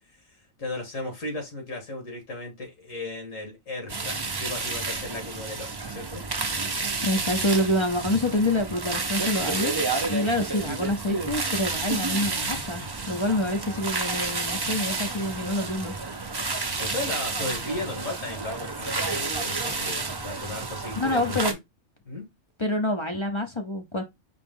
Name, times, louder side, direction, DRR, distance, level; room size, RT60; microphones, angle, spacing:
voice 1, 0.6-6.3 16.4-21.6 22.1-22.3, left 2 dB, 75° left, 2.1 m, -36 dB
sound 1, 3.9-21.5, right 3 dB, 30° right, 0.4 m, -30 dB
voice 2, 7.0-9.7 10.1-16.0 21.0-21.5 22.6-24.0, left 1 dB, 35° left, 0.5 m, -27 dB
5.0 x 3.0 x 3.6 m
omnidirectional pair, 1.4 m